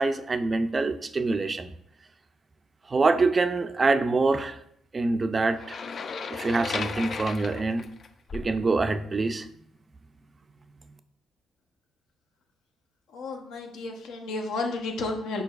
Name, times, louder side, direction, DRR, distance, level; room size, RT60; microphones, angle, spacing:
voice 1, 0.0-1.7 2.9-4.6 4.9-5.8 6.3-7.8 8.3-9.5, right 3 dB, 30° right, 10 dB, 0.3 m, -25 dB
sound 1, 5.6-8.6, left 5 dB, 50° left, 0.3 m, -35 dB
voice 2, 13.1-15.4, left 3 dB, 85° left, 2 dB, 0.8 m, -32 dB
4.6 x 4.5 x 2.4 m, 0.71 s
cardioid pair, 90°, 0 cm